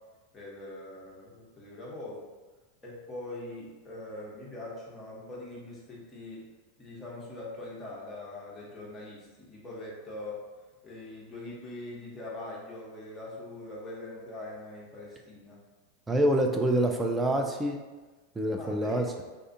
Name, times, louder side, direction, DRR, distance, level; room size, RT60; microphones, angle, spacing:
voice 1, 0.3-2.3 2.8-6.5 6.8-10.4 10.8-15.6 18.6-19.2, left 2 dB, 20° left, -6 dB, 0.8 m, -42 dB
voice 2, 16.1-17.8 18.4-19.1, right 1 dB, 15° right, 2 dB, 0.4 m, -26 dB
2.5 x 2.3 x 2.6 m, 1.2 s
hypercardioid pair, 90°, 0 cm